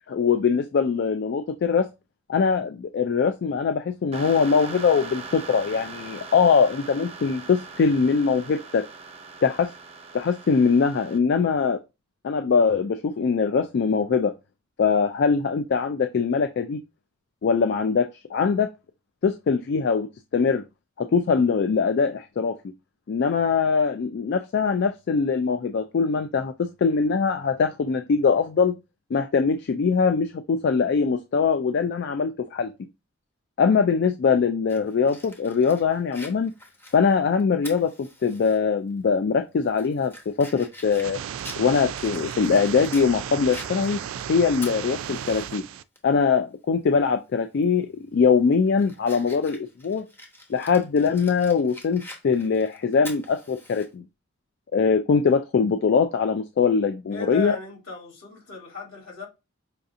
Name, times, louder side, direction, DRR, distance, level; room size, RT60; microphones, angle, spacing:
voice 1, 0.1-1.9 2.3-8.9 9.4-9.7 10.1-11.8 12.2-14.3 14.8-16.8 17.4-18.7 19.2-20.6 21.0-22.6 23.1-28.7 29.1-32.7 33.6-36.5 36.9-41.2 41.6-44.0 44.3-45.6 46.0-50.0 50.5-54.0 54.7-57.6, left 5 dB, 55° left, 0.3 m, -22 dB
sound 1, 4.1-11.2, right 4 dB, 30° right, 0.6 m, -40 dB
Fire, 34.7-38.6 39.0-39.1 39.6-43.1 43.5-45.6 46.0-46.1 47.5-47.8 48.3-53.9, left 2 dB, 10° left, 1.0 m, -45 dB
sound 2, 40.8-45.8, right 9 dB, 85° right, 0.3 m, -34 dB
voice 2, 57.1-59.3, left 6 dB, 80° left, 2.8 m, -36 dB
5.6 x 2.7 x 2.5 m
head